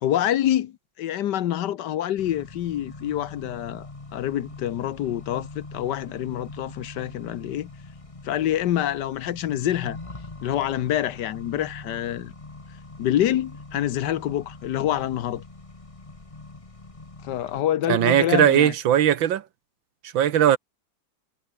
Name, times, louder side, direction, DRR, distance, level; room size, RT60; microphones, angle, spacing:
voice 1, 0.0-3.9 4.1-7.7 8.2-10.0 10.4-12.3 13.0-15.4 17.2-18.7, left 12 dB, 70° left, 1.4 m, -26 dB
Accelerating revving vroom, 2.2-17.6, left 2 dB, 20° left, 1.7 m, -43 dB
voice 2, 17.9-19.4 20.1-20.6, right 10 dB, 80° right, 1.8 m, -19 dB
omnidirectional pair, 2.1 m